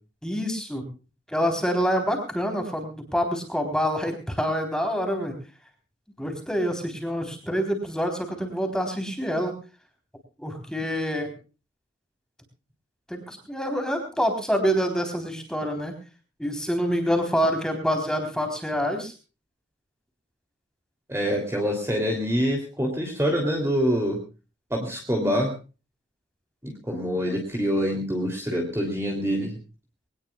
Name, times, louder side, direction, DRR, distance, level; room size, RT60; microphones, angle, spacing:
voice 1, 0.2-0.8 1.3-5.3 6.2-9.6 10.4-11.3 13.1-15.9 16.4-19.1, equal, 5° left, 4 dB, 3.8 m, -26 dB
voice 2, 21.1-24.2 24.7-25.5 26.6-29.6, equal, 15° right, 2 dB, 3.1 m, -25 dB
23.0 x 18.5 x 2.4 m, 0.34 s
head